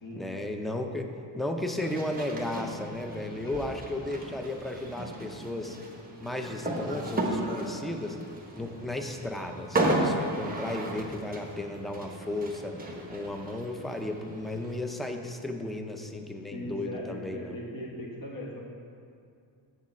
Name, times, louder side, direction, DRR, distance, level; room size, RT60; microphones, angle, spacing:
voice 1, 0.2-5.8 6.2-8.2 8.6-12.8 13.1-17.6, left 1 dB, ahead, 4 dB, 0.4 m, -34 dB
sound 1, 1.9-14.8, right 1 dB, 20° right, 1.1 m, -34 dB
voice 2, 16.5-18.6, equal, 45° left, -3 dB, 1.6 m, -39 dB
7.3 x 7.2 x 4.6 m, 2.4 s
wide cardioid pair, 120°, 47 cm